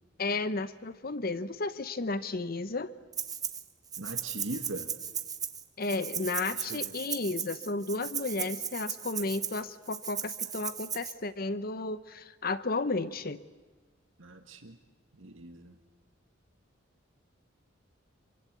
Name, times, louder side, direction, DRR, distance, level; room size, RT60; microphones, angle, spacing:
voice 1, 0.2-2.9 5.8-13.4, left 3 dB, 45° left, 14 dB, 0.8 m, -33 dB
Rattle (instrument), 3.1-3.6 3.9-11.1, right 7 dB, 20° right, 1.1 m, -36 dB
voice 2, 4.0-4.9 6.5-6.9 14.2-14.8 15.2-15.7, right 2 dB, 75° right, 6 dB, 1.7 m, -41 dB
27.5 x 24.5 x 8.2 m, 1.3 s
head